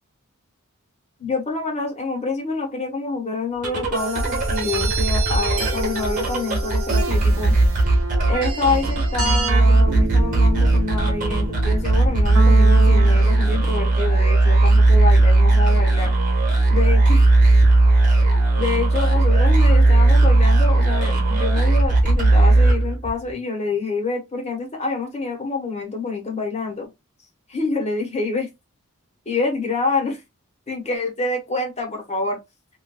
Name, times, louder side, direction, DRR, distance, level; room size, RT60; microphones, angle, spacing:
voice 1, 1.2-7.5 8.3-16.1 16.7-17.4 18.6-26.9 27.5-28.5 29.2-30.2 30.7-32.4, left 3 dB, 30° left, 1.1 m, -27 dB
sound 1, 3.5-23.3, right 2 dB, 40° right, 1.1 m, -17 dB
sound 2, 3.9-13.3, right 5 dB, 70° right, 0.8 m, -29 dB
3.2 x 3.0 x 2.3 m
head